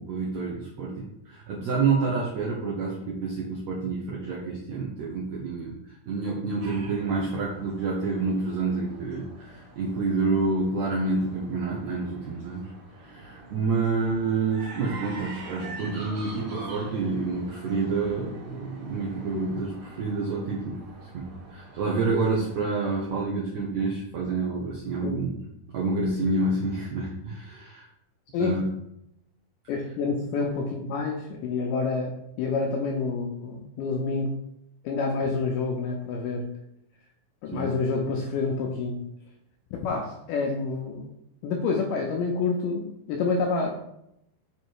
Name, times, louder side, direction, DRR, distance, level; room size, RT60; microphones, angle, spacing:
voice 1, 0.0-5.7 6.1-12.7 13.0-25.3 25.7-27.9 28.4-28.6 37.5-37.6, right 3 dB, 75° right, -3 dB, 1.6 m, -28 dB
sound 1, 6.6-23.2, right 2 dB, 55° right, 2.8 m, -44 dB
voice 2, 29.7-34.3 34.8-36.4 37.4-39.0 39.7-41.1 41.4-43.7, left 4 dB, 80° left, 1 dB, 1.9 m, -28 dB
7.0 x 3.1 x 4.6 m, 0.79 s
omnidirectional pair, 4.3 m